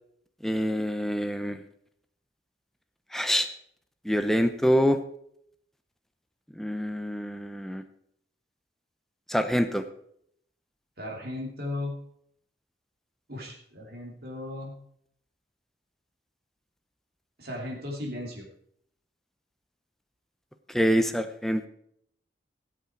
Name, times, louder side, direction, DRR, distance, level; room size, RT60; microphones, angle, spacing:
voice 1, 0.4-1.6 3.1-3.5 4.0-5.0 6.6-7.8 9.3-9.9 20.7-21.7, equal, ahead, 8 dB, 0.7 m, -25 dB
voice 2, 11.0-11.9 13.3-14.7 17.4-18.5, left 1 dB, 55° right, -2 dB, 2.9 m, -36 dB
17.0 x 8.4 x 4.6 m, 0.68 s
head